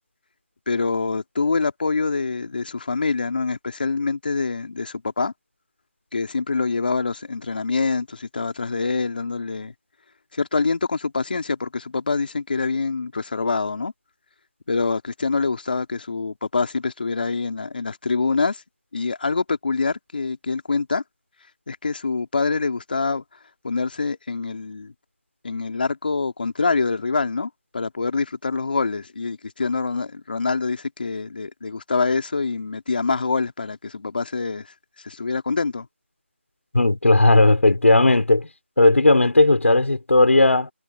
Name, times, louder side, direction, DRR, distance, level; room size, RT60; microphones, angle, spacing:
voice 1, 0.7-5.3 6.1-9.7 10.3-13.9 14.7-18.6 18.9-21.0 21.7-23.2 23.6-24.9 25.4-35.9, left 4 dB, 45° left, 2.4 m, -25 dB
voice 2, 36.7-38.5 38.8-40.7, left 2 dB, 85° left, 3.8 m, -16 dB
figure-of-eight pair, 170°, 7 cm